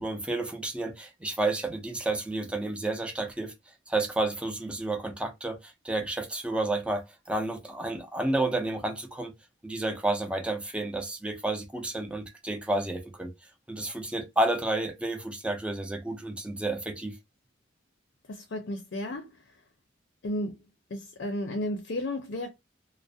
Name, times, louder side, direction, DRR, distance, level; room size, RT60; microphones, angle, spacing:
voice 1, 0.0-3.5 3.9-9.3 9.6-13.3 13.7-17.2, right 2 dB, 5° right, 0.4 m, -31 dB
voice 2, 18.3-19.3 20.2-20.6 20.9-22.5, left 1 dB, 65° left, 0.5 m, -33 dB
2.3 x 2.0 x 2.6 m
head